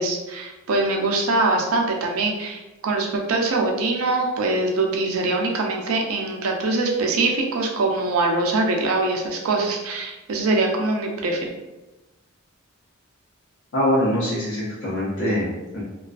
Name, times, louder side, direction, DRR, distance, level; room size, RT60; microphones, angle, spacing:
voice 1, 0.0-11.5, right 2 dB, 85° right, 1 dB, 0.5 m, -23 dB
voice 2, 13.7-15.8, equal, 60° left, -8 dB, 0.8 m, -23 dB
2.4 x 2.3 x 2.3 m, 1.1 s
head